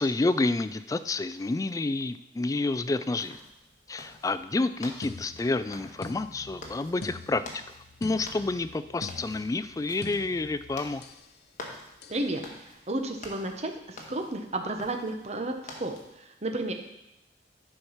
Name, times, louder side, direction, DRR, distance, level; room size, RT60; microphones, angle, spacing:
voice 1, 0.0-3.4 3.9-7.6 8.0-11.0, left 2 dB, 20° left, 13 dB, 0.3 m, -29 dB
sound 1, 3.2-16.1, left 2 dB, 45° left, 1.4 m, -48 dB
sound 2, 5.0-11.3 12.0-12.3, left 3 dB, 65° left, 0.6 m, -45 dB
voice 2, 12.1-16.7, right 2 dB, 40° right, 4 dB, 0.9 m, -33 dB
9.7 x 4.5 x 5.7 m, 0.89 s
head